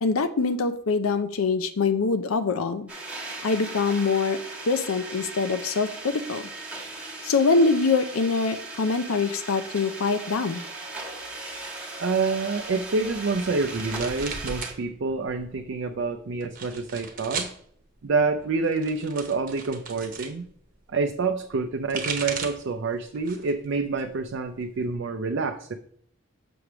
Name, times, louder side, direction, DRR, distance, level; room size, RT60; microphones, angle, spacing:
voice 1, 0.0-2.9 3.4-4.4 4.7-6.4 7.2-10.6, left 4 dB, 90° left, 10 dB, 0.6 m, -24 dB
sound 1, 2.9-14.7, right 2 dB, 5° right, 1.3 m, -38 dB
voice 2, 12.0-17.5 18.0-20.5 20.9-25.7, right 4 dB, 60° right, 5 dB, 0.4 m, -27 dB
sound 2, 13.0-14.8 15.1-15.7 16.4-17.6 18.6-20.3 21.6-22.7 23.1-23.6 24.0-24.9, right 5 dB, 40° right, 1.0 m, -36 dB
6.9 x 3.3 x 6.0 m, 0.62 s
head